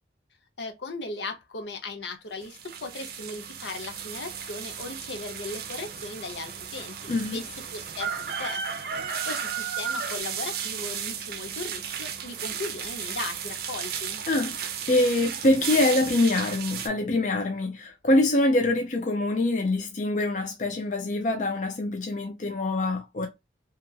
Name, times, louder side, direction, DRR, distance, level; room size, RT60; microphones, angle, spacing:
voice 1, 0.6-8.6 9.0-14.2, left 3 dB, 75° left, 0.7 m, -37 dB
sound 1, 2.4-16.9, right 7 dB, 55° right, 0.5 m, -34 dB
voice 2, 7.1-7.4 14.3-14.6 14.9-23.3, left 2 dB, 40° left, 0.5 m, -24 dB
2.9 x 2.4 x 2.3 m
head